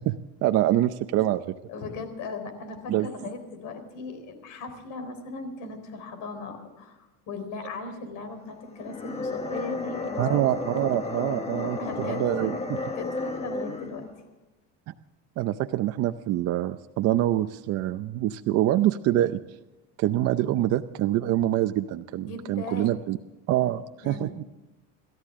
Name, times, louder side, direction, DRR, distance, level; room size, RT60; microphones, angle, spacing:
voice 1, 0.0-1.5 2.9-3.1 10.2-12.6 14.9-15.0 15.4-19.4 20.0-23.2 23.5-24.4, right 13 dB, 45° right, 9 dB, 0.6 m, -25 dB
voice 2, 1.7-10.4 11.8-12.5 12.8-13.1 13.4-14.1 22.3-23.0 23.6-23.7 24.0-24.3, left 3 dB, 55° left, 8 dB, 4.2 m, -38 dB
sound 1, 8.7-14.1, left 3 dB, 15° left, 1.3 m, -33 dB
29.0 x 13.5 x 3.7 m, 1.0 s
cardioid pair, 155°, 36 cm